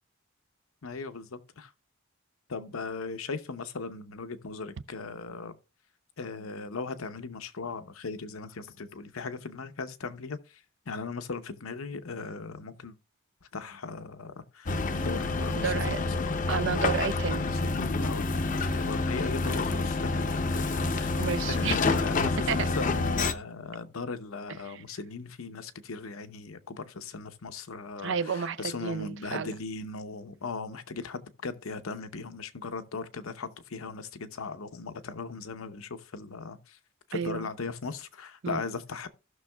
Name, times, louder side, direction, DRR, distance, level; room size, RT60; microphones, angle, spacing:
voice 1, 0.8-1.7 2.5-5.5 6.2-10.4 10.9-12.9 13.5-16.4 17.4-21.2 21.5-36.8 37.1-39.1, left 4 dB, 85° left, 0.8 m, -38 dB
sound 1, 14.7-23.3, left 3 dB, 40° left, 0.6 m, -28 dB
voice 2, 15.6-16.0 16.5-17.5 20.8-21.8 22.5-22.7 24.7-24.8 28.0-29.5 37.1-37.5 38.4-38.6, right 6 dB, 60° right, 0.5 m, -31 dB
16.0 x 6.2 x 2.3 m
head